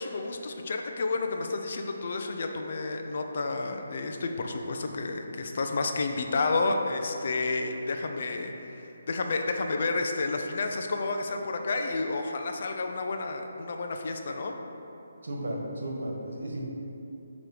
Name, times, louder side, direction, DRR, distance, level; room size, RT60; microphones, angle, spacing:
voice 1, 0.0-14.5, left 3 dB, 50° left, 4 dB, 0.6 m, -30 dB
voice 2, 15.2-16.6, right 1 dB, 80° right, -1 dB, 1.4 m, -34 dB
8.9 x 3.1 x 4.8 m, 2.9 s
hypercardioid pair, 165°, 0 cm